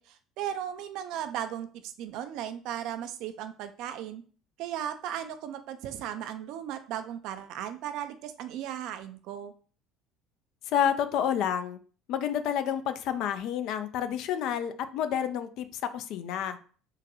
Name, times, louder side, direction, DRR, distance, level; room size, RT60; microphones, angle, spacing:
voice 1, 0.0-4.2 4.6-9.5, right 10 dB, 60° right, 9 dB, 0.4 m, -36 dB
voice 2, 10.7-11.8 12.1-16.6, left 9 dB, 60° left, 10 dB, 0.4 m, -29 dB
3.7 x 2.2 x 2.9 m, 0.41 s
hypercardioid pair, 65°, 0 cm